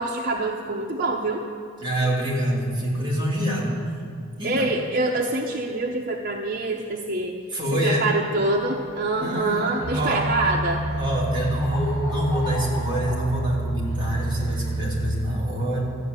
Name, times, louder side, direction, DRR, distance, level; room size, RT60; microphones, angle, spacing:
voice 1, 0.0-1.4 4.4-7.3 7.8-10.8, right 2 dB, 40° right, 0 dB, 0.8 m, -25 dB
voice 2, 1.8-3.7 4.4-4.7 7.5-8.1 9.1-10.2 10.5-10.6 11.0-15.8, equal, 25° right, -5 dB, 3.0 m, -26 dB
sound 1, 8.3-15.2, left 1 dB, 25° left, 4.4 m, -40 dB
sound 2, 9.8-15.1, right 2 dB, ahead, 2.2 m, -29 dB
13.0 x 8.0 x 8.3 m, 2.2 s
head